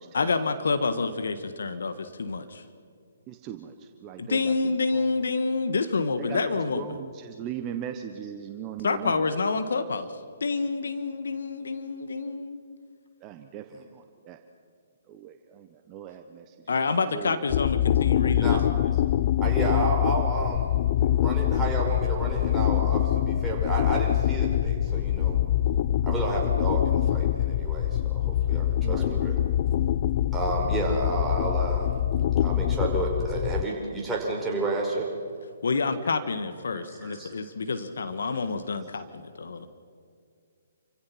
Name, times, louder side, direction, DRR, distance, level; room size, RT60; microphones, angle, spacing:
voice 1, 0.1-2.6 4.2-6.8 8.8-10.1 10.4-12.6 16.7-18.6 35.6-39.7, left 4 dB, 70° left, 11 dB, 1.5 m, -28 dB
voice 2, 3.3-5.2 6.2-6.4 6.7-9.3 13.2-14.4 15.1-16.8 17.1-17.4 28.8-29.1, right 9 dB, 25° right, 6 dB, 1.1 m, -39 dB
sound 1, 17.5-33.6, left 11 dB, 45° left, 0.5 m, -24 dB
voice 3, 19.4-25.5 26.0-29.4 30.3-31.9 32.4-35.1 36.7-37.3, right 2 dB, 5° right, -4 dB, 5.2 m, -31 dB
29.0 x 16.0 x 5.9 m, 2.2 s
figure-of-eight pair, 135°, 0 cm